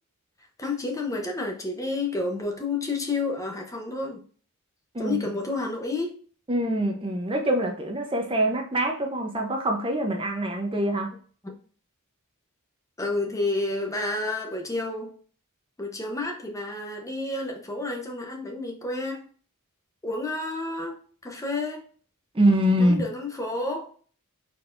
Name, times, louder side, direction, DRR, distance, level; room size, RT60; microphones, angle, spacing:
voice 1, 0.6-4.2 5.0-6.2 11.4-11.5 13.0-15.2 15.8-19.3 20.0-21.8 22.8-23.9, left 2 dB, 15° left, 2 dB, 0.8 m, -30 dB
voice 2, 6.5-11.1 22.3-23.0, right 1 dB, 25° right, 2 dB, 0.7 m, -24 dB
4.3 x 4.0 x 2.6 m, 0.43 s
head